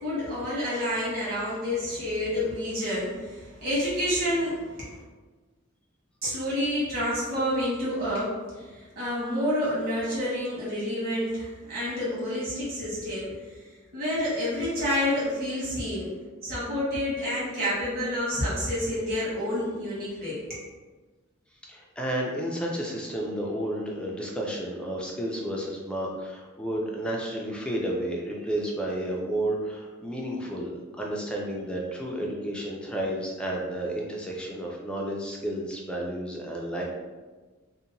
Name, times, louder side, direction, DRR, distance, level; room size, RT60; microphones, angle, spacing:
voice 1, 0.0-5.0 6.2-13.5 13.9-16.1 16.4-20.4, left 1 dB, 45° right, -8 dB, 1.2 m, -29 dB
voice 2, 21.6-36.8, right 1 dB, 5° left, -2 dB, 0.3 m, -31 dB
2.8 x 2.1 x 2.6 m, 1.3 s
head